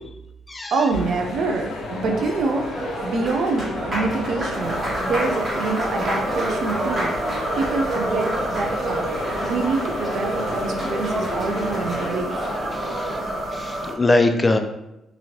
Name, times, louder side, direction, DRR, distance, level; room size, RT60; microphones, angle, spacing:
voice 1, 0.7-7.1 7.6-9.1 9.4-12.4, right 3 dB, 65° right, 4 dB, 0.5 m, -26 dB
sound 1, 0.9-12.1, left 2 dB, 80° left, 0.6 m, -35 dB
Applause, 1.7-13.5, right 1 dB, 30° right, 1.4 m, -29 dB
sound 2, 4.6-13.9, right 1 dB, 5° right, 1.3 m, -31 dB
voice 2, 12.7-13.2 13.5-14.6, left 2 dB, 25° left, 6 dB, 0.3 m, -21 dB
2.9 x 2.7 x 2.8 m, 0.91 s
cardioid pair, 90°, 0 cm